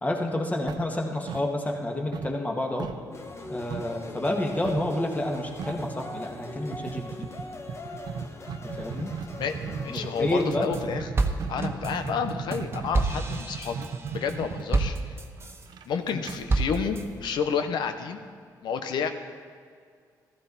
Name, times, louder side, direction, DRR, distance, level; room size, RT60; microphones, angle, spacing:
voice 1, 0.0-2.9 3.5-7.3 8.6-9.1 9.9-10.7, left 1 dB, 20° left, 1 dB, 2.1 m, -29 dB
sound 1, 0.7-1.9 2.1-4.0 4.6-5.0 5.3-5.4 5.6-6.0 6.7-17.5, right 6 dB, 70° right, 0.8 m, -37 dB
sound 2, 3.1-10.5, left 2 dB, 35° left, 1.3 m, -42 dB
voice 2, 9.8-11.1 11.5-15.0 15.9-18.2 18.6-19.1, left 6 dB, 80° left, 8 dB, 1.0 m, -30 dB
sound 3, 10.3-10.8 11.2-15.7 16.1-17.0, right 3 dB, 35° right, 1.3 m, -29 dB
15.0 x 14.0 x 4.2 m, 2.1 s
cardioid pair, 80°, 8 cm